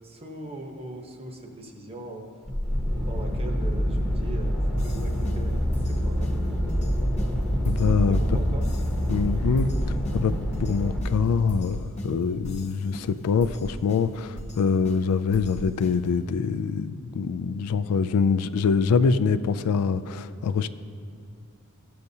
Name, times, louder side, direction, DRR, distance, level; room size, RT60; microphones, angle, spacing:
voice 1, 0.0-2.3 2.8-6.3 8.1-8.7, right 1 dB, 25° right, 2 dB, 0.9 m, -40 dB
sound 1, 2.5-11.0, equal, 5° left, 0.8 m, -26 dB
sound 2, 4.8-16.3, equal, 30° left, 1.0 m, -41 dB
voice 2, 7.7-8.2 9.1-20.7, left 5 dB, 80° left, 13 dB, 0.3 m, -24 dB
14.5 x 6.7 x 2.7 m, 2.6 s
head